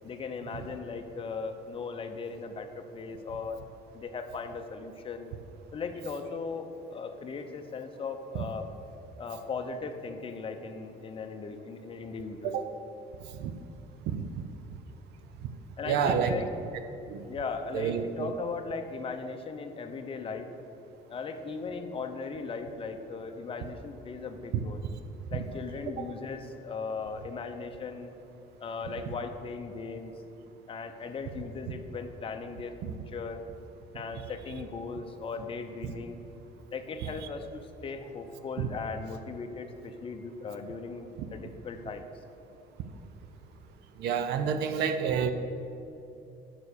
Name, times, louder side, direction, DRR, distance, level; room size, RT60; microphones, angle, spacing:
voice 1, 0.0-3.6 3.9-5.3 5.7-8.7 9.2-12.6 15.8-16.5 17.2-20.5 21.1-24.8 25.3-28.1 28.6-30.1 30.7-33.4 33.9-36.2 36.7-42.1, left 4 dB, 30° left, 5 dB, 0.7 m, -38 dB
voice 2, 15.9-16.4 17.1-17.2 17.7-18.3 24.5-24.6 37.0-37.1 38.6-38.7 44.0-45.3, right 7 dB, 80° right, 8 dB, 0.6 m, -28 dB
6.9 x 5.9 x 6.6 m, 2.8 s
cardioid pair, 110°, 17 cm